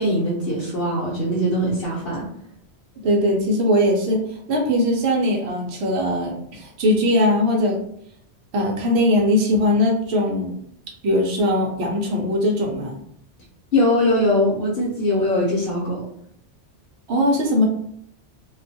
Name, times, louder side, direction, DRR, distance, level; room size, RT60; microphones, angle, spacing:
voice 1, 0.0-2.3 13.7-16.0, left 1 dB, 60° left, -5 dB, 0.9 m, -21 dB
voice 2, 3.0-4.2 4.5-7.8 8.5-10.5 11.0-13.0 17.1-17.7, left 1 dB, 70° right, 0 dB, 0.9 m, -20 dB
2.4 x 2.2 x 2.6 m, 0.68 s
omnidirectional pair, 1.2 m